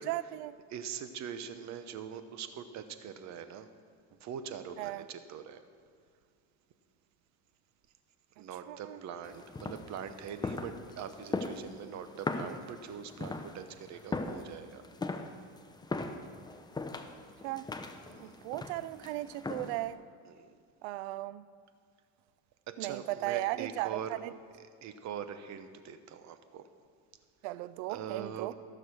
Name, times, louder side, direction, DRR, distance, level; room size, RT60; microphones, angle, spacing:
voice 1, 0.0-0.5 4.8-5.0 8.7-9.0 17.4-17.7 18.2-20.0 20.8-21.5 22.8-24.3 27.4-28.5, right 16 dB, 85° right, 0.5 m, -36 dB
voice 2, 0.7-3.7 4.1-5.6 8.4-14.8 18.1-18.4 20.2-20.6 22.7-24.2 24.6-26.7 27.9-28.5, right 8 dB, 55° right, 1.0 m, -43 dB
sound 1, 9.2-19.9, left 3 dB, 10° left, 0.8 m, -40 dB
15.0 x 6.6 x 6.4 m
supercardioid pair, 100°, 33 cm